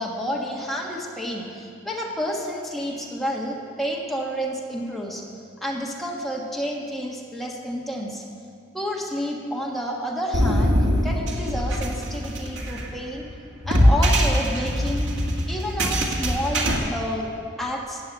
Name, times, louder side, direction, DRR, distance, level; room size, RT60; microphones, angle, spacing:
voice 1, 0.0-5.2 5.6-8.2 8.7-10.8 11.0-13.2 13.6-15.1 15.5-17.3 17.6-18.0, equal, ahead, -2 dB, 1.4 m, -30 dB
sound 1, 10.3-16.8, equal, 85° right, 1.9 m, -22 dB
14.5 x 8.4 x 8.3 m, 2.3 s
head